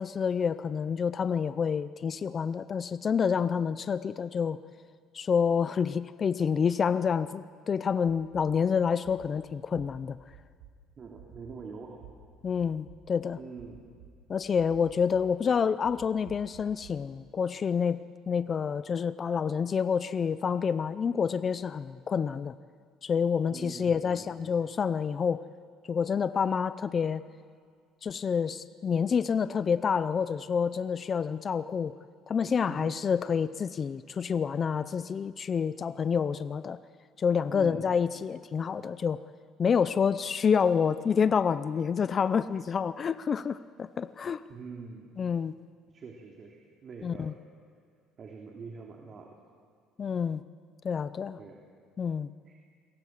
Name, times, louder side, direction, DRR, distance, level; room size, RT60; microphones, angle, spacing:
voice 1, 0.0-4.6 5.1-10.2 12.4-13.4 14.3-22.5 23.0-25.4 25.9-27.2 28.0-31.9 32.3-36.8 37.2-39.2 39.6-44.4 45.2-45.5 47.0-47.3 50.0-50.4 50.8-51.4 52.0-52.3, left 6 dB, 30° left, 14 dB, 0.6 m, -28 dB
sound 1, 8.0-8.4 9.0-9.3 9.7-9.8 10.3-10.7 11.2-11.5 12.0-12.1 12.6-13.0 13.6-14.1 14.6-15.2 15.8-16.9, right 10 dB, 80° right, 7.2 m, -50 dB
voice 2, 11.0-12.0 13.4-13.8 23.5-24.7 32.7-33.0 37.5-37.9 44.5-45.2 45.9-47.3 48.2-49.3 51.4-51.6 52.5-52.6, right 4 dB, 35° right, 0 dB, 2.9 m, -45 dB
29.0 x 22.5 x 7.5 m, 2.1 s
cardioid pair, 130°, 0 cm